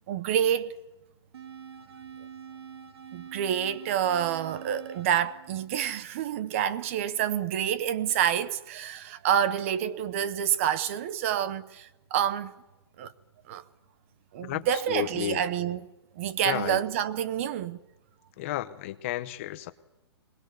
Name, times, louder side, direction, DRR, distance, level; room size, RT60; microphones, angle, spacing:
voice 1, 0.1-0.7 3.1-12.5 13.0-13.1 13.5-13.6 14.3-15.9 16.2-17.8, right 9 dB, 30° right, 0.7 m, -28 dB
sound 1, 1.3-6.4, right 8 dB, 65° right, 2.6 m, -46 dB
voice 2, 14.4-15.4 16.4-16.8 18.4-19.7, left 14 dB, 30° left, 0.8 m, -32 dB
21.0 x 21.0 x 8.0 m
hypercardioid pair, 170°, 14 cm